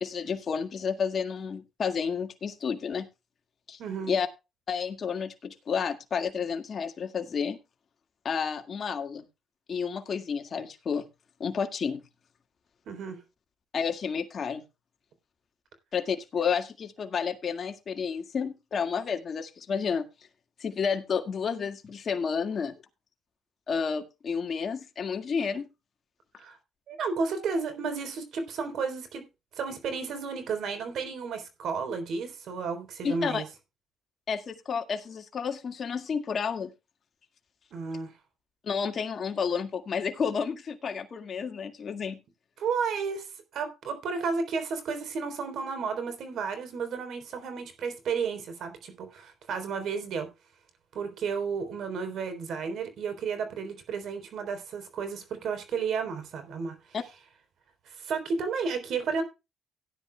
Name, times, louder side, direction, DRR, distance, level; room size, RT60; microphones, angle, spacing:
voice 1, 0.0-3.1 3.7-3.8 4.1-4.3 4.7-7.6 8.2-9.2 9.7-11.0 11.4-12.0 13.7-14.6 15.9-20.1 20.6-22.7 23.7-25.7 33.0-33.4 34.3-36.7 38.6-42.2 56.9-57.0, left 6 dB, 50° left, 1.9 m, -31 dB
voice 2, 3.8-4.1 12.9-13.2 26.4-26.6 26.9-29.2 29.6-33.4 37.7-38.1 42.6-43.3 43.5-50.3 50.9-56.8 58.0-59.2, right 5 dB, 70° right, 3.7 m, -32 dB
17.0 x 10.5 x 2.3 m
cardioid pair, 90°, 0 cm